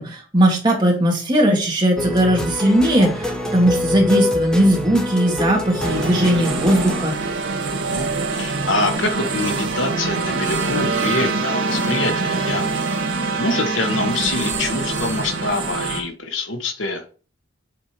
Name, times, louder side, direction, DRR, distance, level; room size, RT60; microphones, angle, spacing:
voice 1, 0.0-7.1, right 1 dB, 25° right, 1.9 m, -18 dB
sound 1, 2.0-7.0, left 1 dB, 5° left, 0.8 m, -25 dB
sound 2, 5.8-16.0, right 3 dB, 90° right, 1.6 m, -24 dB
voice 2, 7.6-12.7 13.4-17.0, left 2 dB, 85° left, 1.2 m, -25 dB
7.5 x 3.6 x 4.4 m
head